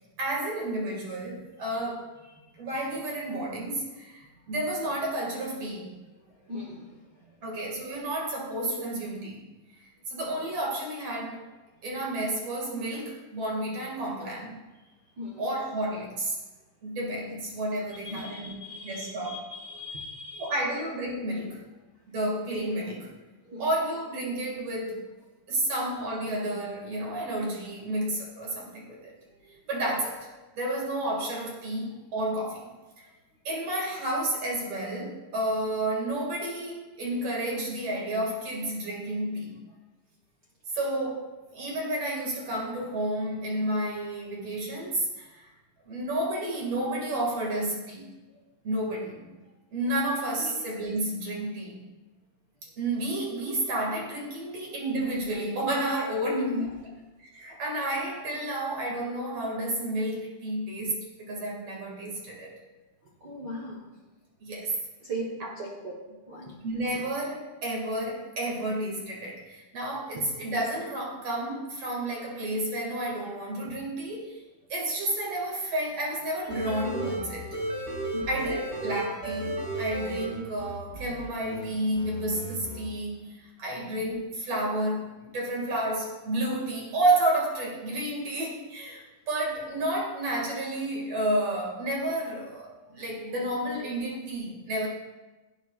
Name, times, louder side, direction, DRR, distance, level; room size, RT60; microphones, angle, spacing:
voice 1, 0.2-2.1 2.6-5.9 7.4-9.4 10.1-11.4 11.8-14.6 15.4-16.3 16.8-18.5 18.8-19.5 20.4-21.6 22.1-23.1 23.6-25.1 25.5-29.1 29.7-30.3 30.6-33.0 33.4-39.6 40.7-45.5 45.9-48.1 48.6-49.3 49.7-51.8 52.8-56.6 57.2-62.6 64.4-64.7 65.4-65.5 66.6-74.4 74.7-77.6 78.3-94.9, right 1 dB, 50° right, -3 dB, 3.0 m, -31 dB
voice 2, 6.5-7.0 7.2-7.4 15.2-15.4 18.0-20.5 23.4-23.7 29.4-29.5 50.4-50.6 56.3-56.6 63.2-63.8 65.0-65.3 65.6-65.9 66.3-66.6 70.2-70.3 76.7-76.8 78.1-78.3 92.9-93.0, equal, 75° right, -4 dB, 0.9 m, -37 dB
sound 1, 76.4-81.7 82.0-82.8, right 1 dB, 10° right, 3.6 m, -34 dB
16.5 x 8.9 x 2.5 m, 1.1 s
omnidirectional pair, 4.0 m